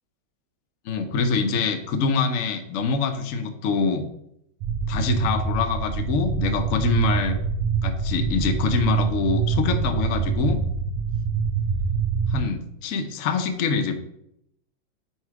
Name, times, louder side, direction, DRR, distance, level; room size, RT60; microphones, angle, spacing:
voice 1, 0.8-4.0 4.9-7.4 7.8-10.6 12.3-14.0, left 5 dB, 75° left, 6 dB, 0.7 m, -25 dB
sound 1, 4.6-12.4, right 5 dB, 85° right, 1.6 m, -25 dB
4.8 x 4.3 x 4.6 m, 0.75 s
omnidirectional pair, 2.3 m